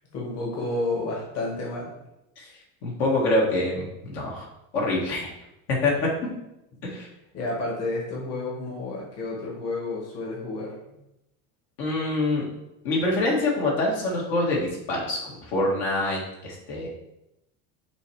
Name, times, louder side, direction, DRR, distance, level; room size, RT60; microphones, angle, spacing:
voice 1, 0.1-1.9 7.3-11.0, left 2 dB, 35° left, -3 dB, 1.8 m, -31 dB
voice 2, 2.8-4.5 4.7-5.3 5.7-5.9 6.8-7.1 11.8-12.4 12.8-16.9, left 2 dB, 60° left, -3 dB, 2.1 m, -25 dB
6.7 x 3.1 x 4.9 m, 0.88 s
supercardioid pair, 130°, 42 cm